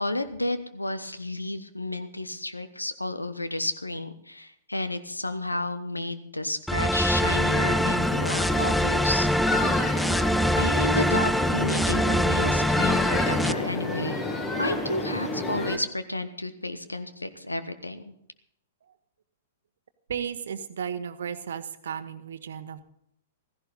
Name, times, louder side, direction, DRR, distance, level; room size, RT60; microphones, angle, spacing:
voice 1, 0.0-9.3 10.6-14.2 14.6-18.1, left 1 dB, 85° left, 12 dB, 1.1 m, -31 dB
sound 1, 6.7-13.5, equal, ahead, 0.4 m, -24 dB
sound 2, 7.1-15.8, left 2 dB, 20° left, 2.0 m, -31 dB
sound 3, 7.8-12.9, equal, 65° left, 6.0 m, -50 dB
voice 2, 20.1-22.8, right 8 dB, 60° right, 11 dB, 1.1 m, -34 dB
16.0 x 14.5 x 4.1 m, 0.72 s
figure-of-eight pair, 105°, 0 cm